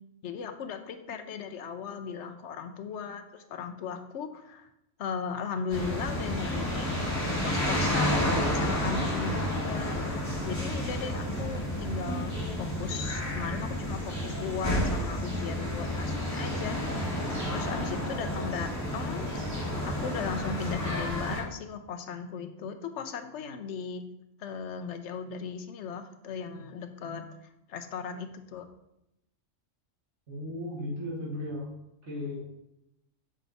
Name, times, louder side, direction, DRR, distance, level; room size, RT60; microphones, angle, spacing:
voice 1, 0.2-4.7 5.0-7.0 7.4-16.8 17.5-19.3 19.9-24.0 24.4-27.3 27.7-28.7, left 6 dB, 70° left, 7 dB, 1.0 m, -37 dB
sound 1, 5.7-21.4, left 1 dB, 10° left, 2.5 m, -31 dB
voice 2, 30.3-31.7 32.0-32.4, left 1 dB, 65° right, -7 dB, 2.3 m, -35 dB
7.4 x 4.4 x 4.0 m, 0.85 s
omnidirectional pair, 1.3 m